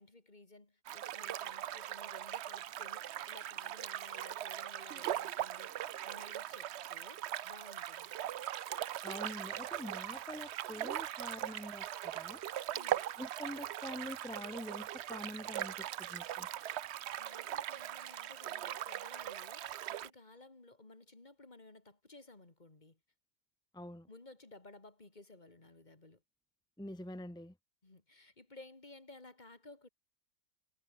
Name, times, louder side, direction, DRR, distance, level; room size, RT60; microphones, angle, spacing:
voice 1, 0.0-8.1 12.7-13.1 17.2-23.0 24.1-26.2 27.8-29.9, left 2 dB, 30° left, 2.6 m, -57 dB
sound 1, 0.9-20.1, right 11 dB, 65° right, 0.7 m, -40 dB
voice 2, 9.0-12.4 13.2-16.5 23.7-24.1 26.8-27.5, left 1 dB, 5° left, 0.5 m, -46 dB
omnidirectional pair, 1.7 m